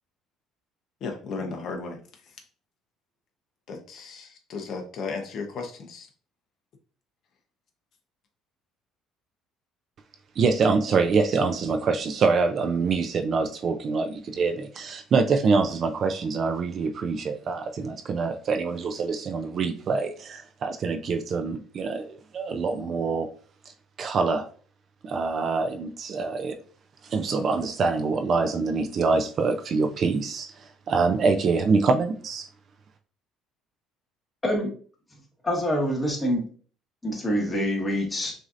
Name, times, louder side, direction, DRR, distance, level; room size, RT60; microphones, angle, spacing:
voice 1, 1.0-2.0 3.7-6.1, left 4 dB, 50° left, 0.8 m, -35 dB
voice 2, 10.4-23.3 24.0-24.5 25.0-26.6 27.0-32.5, right 4 dB, 40° right, 0.4 m, -25 dB
voice 3, 35.4-36.4 37.0-38.3, equal, 15° left, 1.4 m, -25 dB
6.2 x 2.7 x 2.5 m
cardioid pair, 140°, 0 cm